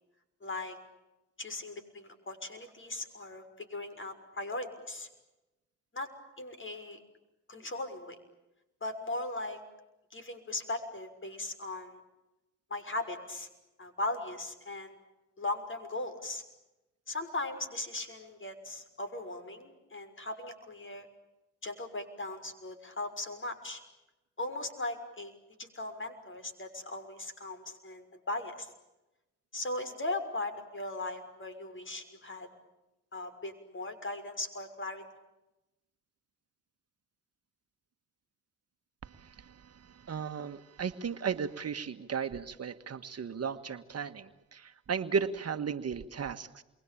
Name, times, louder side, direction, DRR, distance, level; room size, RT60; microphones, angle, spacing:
voice 1, 0.4-0.8 1.4-5.1 5.9-6.1 6.4-7.0 7.5-8.2 8.8-9.6 10.1-12.0 12.7-13.5 13.8-15.0 15.4-16.4 17.1-21.1 21.6-23.8 24.4-28.7 29.5-32.5 33.1-35.0, left 2 dB, 35° left, 9 dB, 6.3 m, -38 dB
voice 2, 39.0-46.6, right 6 dB, 45° right, 9 dB, 1.7 m, -35 dB
28.5 x 23.5 x 8.7 m, 0.98 s
cardioid pair, 70°, 34 cm